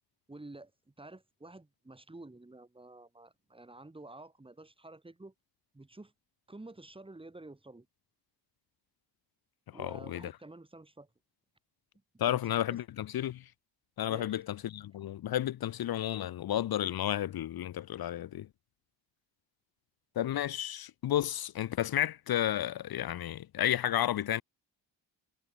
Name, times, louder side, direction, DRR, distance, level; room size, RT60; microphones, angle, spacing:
voice 1, 0.3-5.3 5.7-6.1 6.5-7.9 9.7-11.1 12.3-12.5 14.1-14.4, right 2 dB, 10° right, 6.2 m, -50 dB
voice 2, 9.8-10.3 12.2-13.4 14.0-18.5 20.2-24.4, left 12 dB, 55° left, 0.8 m, -32 dB
cardioid pair, 155°, 45 cm